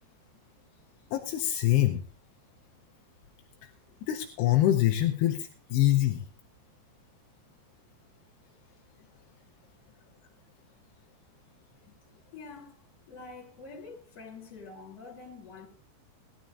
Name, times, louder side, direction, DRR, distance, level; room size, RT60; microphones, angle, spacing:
voice 1, 1.1-2.0 4.1-6.2, left 13 dB, 80° left, 2.9 m, -25 dB
voice 2, 12.3-15.7, left 4 dB, 40° left, 4.1 m, -46 dB
19.0 x 12.5 x 2.6 m
omnidirectional pair, 5.1 m